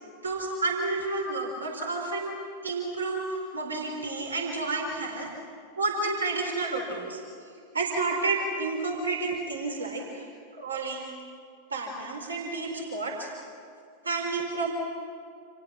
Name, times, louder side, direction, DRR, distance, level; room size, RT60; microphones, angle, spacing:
voice 1, 0.2-2.3 2.6-5.3 5.8-7.2 7.7-10.2 10.6-11.1 11.7-13.3 14.0-14.7, right 3 dB, 75° right, 1 dB, 4.1 m, -30 dB
29.5 x 28.5 x 6.3 m, 2.3 s
figure-of-eight pair, 90°, 0 cm